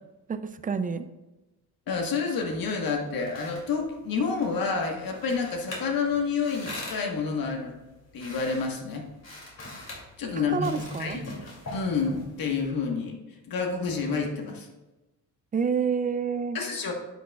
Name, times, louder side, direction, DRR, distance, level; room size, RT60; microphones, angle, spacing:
voice 1, 0.3-1.1 10.4-11.2 15.5-16.6, right 6 dB, 20° right, 11 dB, 0.3 m, -28 dB
voice 2, 1.9-7.8 8.1-9.0 10.2-10.7 11.0-13.1 13.5-14.7 16.5-16.9, left 5 dB, 60° left, 2 dB, 1.4 m, -29 dB
sound 1, 2.9-12.6, left 1 dB, 40° left, 2.6 m, -43 dB
10.5 x 6.2 x 2.3 m, 1.1 s
cardioid pair, 110°, 40 cm